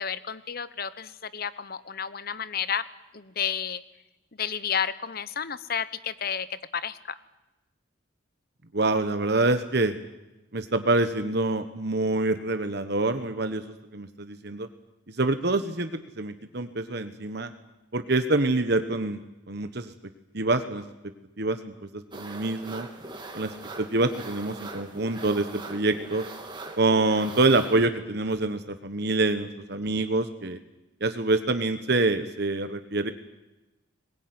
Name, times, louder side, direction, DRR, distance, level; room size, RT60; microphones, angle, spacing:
voice 1, 0.0-2.8 3.1-3.8 4.4-7.2, left 7 dB, 50° left, 15 dB, 1.0 m, -31 dB
voice 2, 8.7-9.9 10.5-13.6 13.9-14.7 15.1-17.5 17.9-19.2 19.5-19.9 20.3-20.8 21.4-22.9 23.3-26.2 26.8-30.6 31.0-33.1, right 2 dB, 55° right, 9 dB, 1.3 m, -26 dB
sound 1, 22.1-27.9, right 2 dB, 25° right, 2.7 m, -41 dB
21.0 x 21.0 x 9.7 m, 1.0 s
head